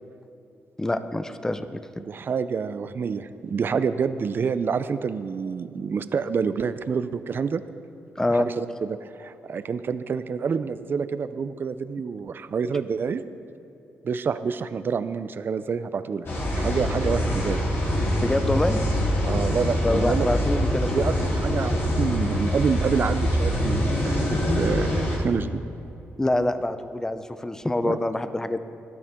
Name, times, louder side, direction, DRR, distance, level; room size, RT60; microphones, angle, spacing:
voice 1, 0.8-1.8 8.2-8.5 18.2-18.8 19.8-21.0 26.2-28.6, left 1 dB, 10° left, 10 dB, 0.6 m, -25 dB
voice 2, 2.0-7.6 8.3-13.2 14.0-16.3 16.6-17.6 19.2-20.3 20.9-24.9 25.2-25.6 27.8-28.0, right 6 dB, 50° right, 13 dB, 0.5 m, -27 dB
sound 1, 16.2-25.2, equal, 60° left, 3.6 m, -24 dB
17.0 x 12.0 x 3.7 m, 2.7 s
cardioid pair, 90°, 5 cm